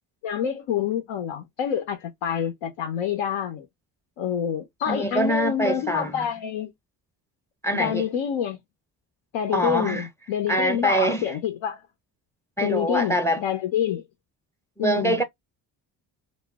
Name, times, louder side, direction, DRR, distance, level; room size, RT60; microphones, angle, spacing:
voice 1, 0.2-3.7 4.2-6.7 7.7-8.6 9.3-11.8 12.6-14.0 14.8-15.2, left 9 dB, 75° left, 0.7 m, -27 dB
voice 2, 4.9-6.2 7.6-8.1 9.5-10.1 10.5-11.3 12.6-13.4 14.8-15.2, right 1 dB, 5° left, 0.4 m, -24 dB
2.1 x 2.0 x 3.4 m
supercardioid pair, 50°, 49 cm